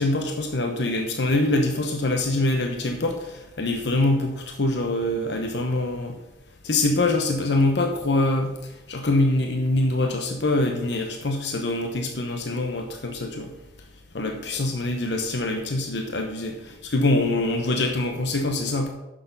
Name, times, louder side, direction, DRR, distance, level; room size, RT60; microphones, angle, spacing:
voice 1, 0.0-6.1 6.6-8.5 8.9-13.5 14.1-18.9, left 2 dB, 75° left, 4 dB, 0.9 m, -24 dB
9.5 x 6.7 x 5.4 m, 0.98 s
head